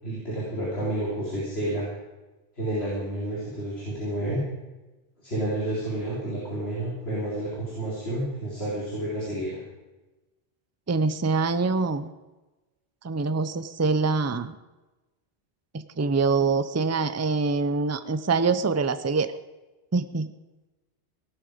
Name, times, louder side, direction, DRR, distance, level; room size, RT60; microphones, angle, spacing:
voice 1, 0.0-1.9 2.6-4.4 5.2-9.6, right 1 dB, 65° left, -7 dB, 4.2 m, -30 dB
voice 2, 10.9-12.1 13.0-14.6 15.7-19.3 19.9-20.3, right 4 dB, 20° right, 12 dB, 0.5 m, -25 dB
17.0 x 12.0 x 5.1 m, 1.1 s
omnidirectional pair, 1.1 m